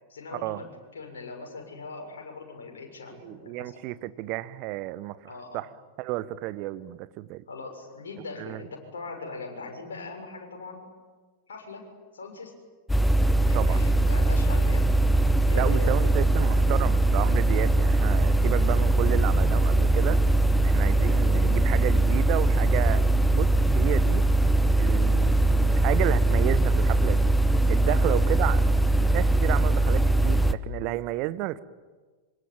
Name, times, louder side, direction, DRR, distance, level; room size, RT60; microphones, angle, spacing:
voice 1, 0.1-0.7 0.9-3.8 5.2-5.6 7.5-10.9 11.5-11.8 12.1-12.5 13.5-14.9 15.5-16.1 20.8-21.0 27.9-28.2, left 3 dB, 65° left, 2 dB, 6.7 m, -40 dB
voice 2, 3.2-5.7 6.0-7.4 8.4-8.7 13.5-13.8 15.5-20.2 20.6-24.2 24.8-27.3 27.7-28.6 29.1-31.6, right 16 dB, 40° right, 16 dB, 1.1 m, -32 dB
sound 1, 12.9-30.5, right 1 dB, 5° left, 1.0 m, -21 dB
25.5 x 25.0 x 8.9 m, 1.4 s
figure-of-eight pair, 90°, 0 cm